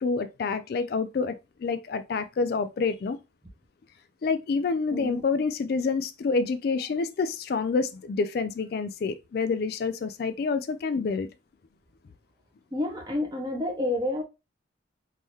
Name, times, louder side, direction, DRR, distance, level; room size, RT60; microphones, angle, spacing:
voice 1, 0.0-3.2 4.2-11.3, left 4 dB, 50° left, 0.3 m, -28 dB
voice 2, 4.9-5.2 12.7-14.2, left 1 dB, 20° right, 1.0 m, -29 dB
3.7 x 2.7 x 3.0 m
head